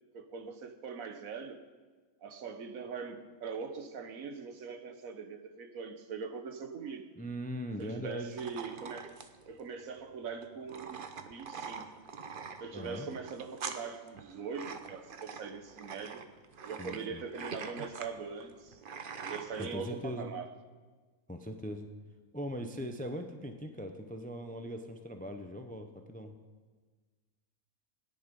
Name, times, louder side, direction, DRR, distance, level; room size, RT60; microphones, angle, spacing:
voice 1, 0.1-1.6 2.2-7.1 7.8-9.1 9.5-11.9 12.6-16.2 16.6-18.8 19.2-20.5, right 5 dB, 70° right, 1.4 m, -42 dB
voice 2, 7.2-8.4 12.7-13.1 16.8-17.2 19.6-20.3 21.3-21.9 22.3-26.3, equal, 10° left, 0.6 m, -40 dB
sound 1, 8.4-19.7, right 5 dB, 45° right, 0.8 m, -44 dB
17.0 x 10.5 x 5.4 m
omnidirectional pair, 1.5 m